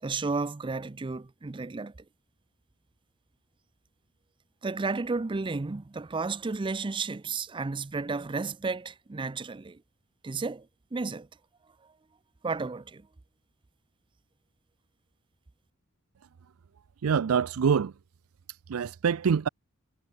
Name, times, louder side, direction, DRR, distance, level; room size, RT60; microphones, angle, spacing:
voice 1, 0.0-1.9 4.6-9.8 10.2-10.7 10.9-11.3 12.4-13.1, right 4 dB, 25° right, 0.5 m, -32 dB
voice 2, 17.0-17.9 18.5-19.5, right 6 dB, 80° right, 0.4 m, -25 dB
head